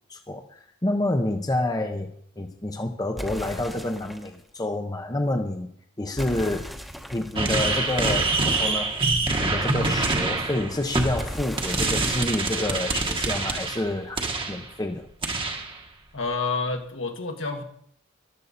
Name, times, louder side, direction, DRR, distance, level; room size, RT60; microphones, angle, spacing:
voice 1, 0.1-2.1 2.4-5.7 6.0-6.7 7.1-8.9 9.4-15.1, left 1 dB, 20° left, 4 dB, 0.9 m, -28 dB
sound 1, 3.2-4.4 6.2-8.9 11.2-13.9, equal, ahead, 1.1 m, -39 dB
sound 2, 7.4-14.7 15.2-15.8, right 3 dB, 25° right, 1.3 m, -26 dB
voice 2, 16.1-17.6, left 3 dB, 70° left, 3 dB, 1.9 m, -28 dB
13.5 x 12.5 x 4.2 m, 0.67 s
head